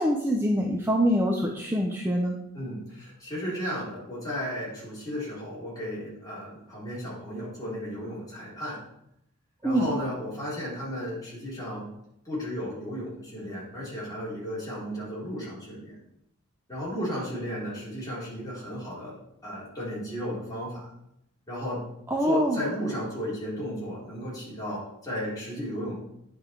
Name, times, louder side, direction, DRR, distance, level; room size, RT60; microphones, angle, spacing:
voice 1, 0.0-2.3 9.6-9.9 22.1-22.6, equal, 10° right, 0 dB, 0.6 m, -24 dB
voice 2, 2.5-8.8 9.6-11.9 12.3-16.0 16.7-19.2 19.4-20.9 21.5-21.8 22.2-26.0, equal, 15° left, -8 dB, 3.7 m, -34 dB
9.3 x 5.2 x 4.6 m, 0.79 s
head